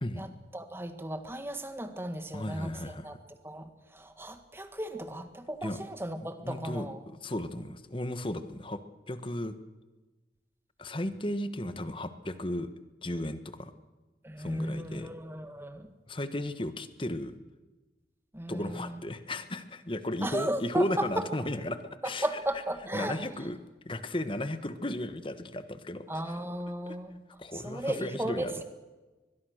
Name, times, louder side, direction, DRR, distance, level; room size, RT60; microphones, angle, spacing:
voice 1, 0.5-3.1 3.4-7.0 14.2-15.9 18.3-19.0 20.2-21.2 22.0-23.2 26.1-27.2 27.5-28.6, right 1 dB, 15° right, 8 dB, 1.8 m, -35 dB
voice 2, 2.3-3.1 5.6-5.8 6.2-8.8 9.1-9.5 10.8-12.7 13.0-13.7 14.4-15.1 16.1-17.3 18.5-22.3 22.9-23.6 23.8-26.4 26.9-27.0 27.4-28.6, left 1 dB, 30° left, 11 dB, 1.3 m, -35 dB
23.5 x 21.5 x 6.5 m, 1.2 s
head